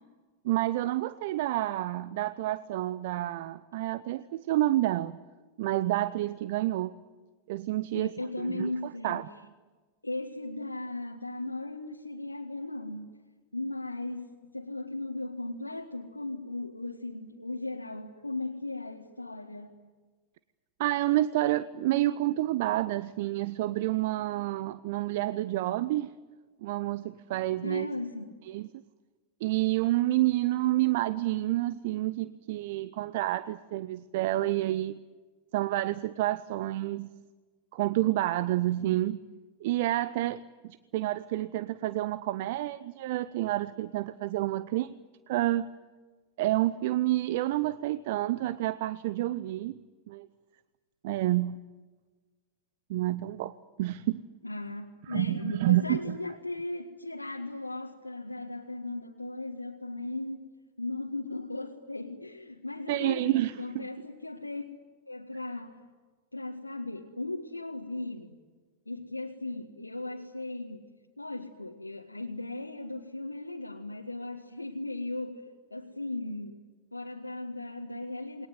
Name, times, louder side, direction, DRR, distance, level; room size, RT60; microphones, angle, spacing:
voice 1, 0.4-5.2 5.6-6.9 7.5-8.1 8.4-8.7 9.0-9.3 20.8-26.1 26.6-27.9 28.5-28.7 29.4-35.0 35.5-37.1 37.7-39.2 39.6-45.0 45.3-45.7 46.4-49.7 50.1-50.3 51.0-51.6 52.9-54.2 55.1-56.2 62.9-63.9, right 15 dB, 50° right, 16 dB, 0.8 m, -29 dB
voice 2, 7.9-9.3 10.0-13.1 13.5-19.9 27.6-28.3 54.4-60.5 60.8-64.7 65.1-65.8 66.3-68.3 68.9-76.6 76.9-78.5, left 2 dB, 85° left, 1 dB, 1.8 m, -37 dB
28.5 x 21.5 x 9.6 m, 1.3 s
figure-of-eight pair, 90°, 0 cm